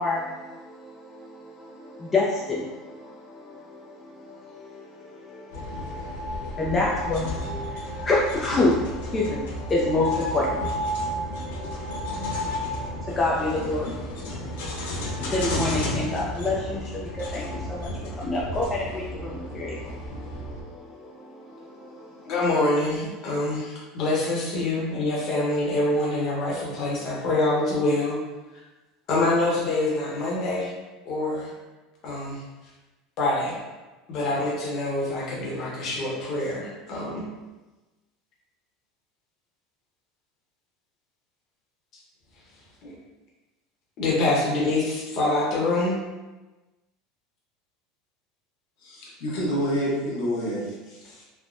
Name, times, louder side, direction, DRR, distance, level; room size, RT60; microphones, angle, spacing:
voice 1, 0.0-22.3, left 2 dB, 15° left, -5 dB, 0.3 m, -29 dB
sound 1, 5.5-20.6, left 1 dB, 85° left, 0.6 m, -32 dB
voice 2, 22.2-28.2 28.5-28.6 29.1-30.7 31.0-31.5 32.0-32.4 33.2-33.6 34.1-37.3 42.8-42.9 44.0-46.0, left 2 dB, 40° left, -4 dB, 0.9 m, -25 dB
voice 3, 48.8-51.2, equal, 70° left, -5 dB, 0.9 m, -28 dB
3.3 x 2.1 x 2.5 m, 1.1 s
supercardioid pair, 150°, 0 cm